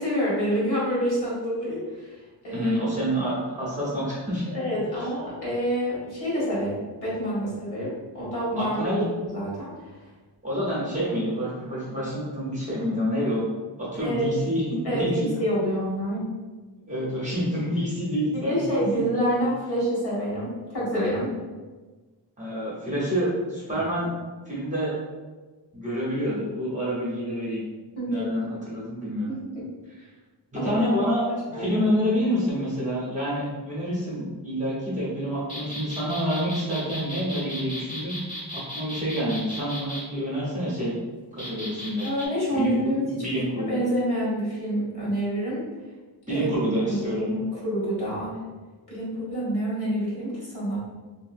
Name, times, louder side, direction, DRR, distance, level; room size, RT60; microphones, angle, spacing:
voice 1, 0.0-2.1 2.4-2.8 4.5-6.8 7.0-9.0 9.3-9.9 14.0-14.3 14.8-16.3 18.3-21.3 28.0-28.3 29.3-29.6 30.5-30.9 31.5-31.9 42.0-43.2 43.7-45.6 46.3-46.5 46.8-48.4 48.9-50.8, equal, 60° left, -7 dB, 1.4 m, -27 dB
voice 2, 2.5-4.7 5.0-5.1 8.6-9.0 10.4-13.5 13.8-15.3 16.9-18.8 22.4-24.1 24.5-25.0 25.7-27.7 28.1-29.3 30.5-31.3 31.6-38.2 38.5-40.9 41.3-42.1 42.5-42.8 43.2-43.9 46.3-47.3, equal, 15° right, -8 dB, 0.8 m, -27 dB
sound 1, 35.5-40.0 41.4-42.3, left 1 dB, 20° left, 0.8 m, -36 dB
2.8 x 2.6 x 2.6 m, 1.3 s
wide cardioid pair, 140°, 44 cm